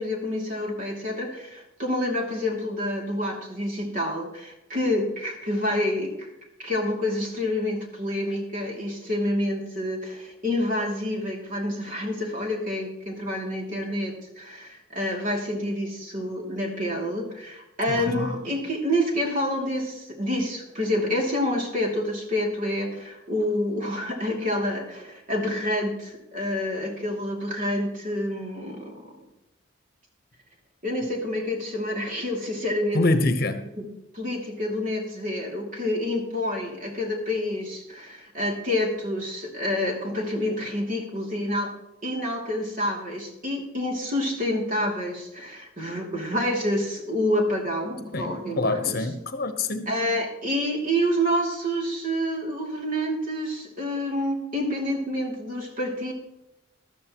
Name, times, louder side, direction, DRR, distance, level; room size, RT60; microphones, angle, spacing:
voice 1, 0.0-6.3 6.6-29.1 30.8-33.0 33.8-33.9 34.1-41.8 42.0-49.0 49.9-56.1, left 1 dB, 45° right, 0 dB, 2.7 m, -28 dB
voice 2, 32.9-33.6 48.1-49.9, left 2 dB, 50° left, 8 dB, 1.1 m, -25 dB
13.5 x 13.0 x 3.0 m, 0.92 s
head